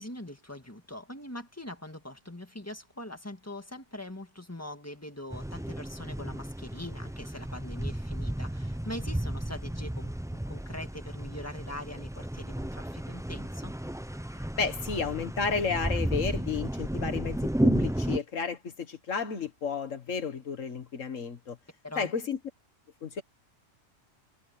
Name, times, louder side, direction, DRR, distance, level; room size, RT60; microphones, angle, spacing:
voice 1, 0.0-13.8 21.8-22.1, left 1 dB, 10° left, 1.8 m, -42 dB
sound 1, 5.3-18.2, right 1 dB, 5° right, 0.4 m, -33 dB
voice 2, 14.6-21.6 22.0-22.4 23.0-23.2, left 5 dB, 80° left, 1.8 m, -32 dB
omnidirectional pair, 1.3 m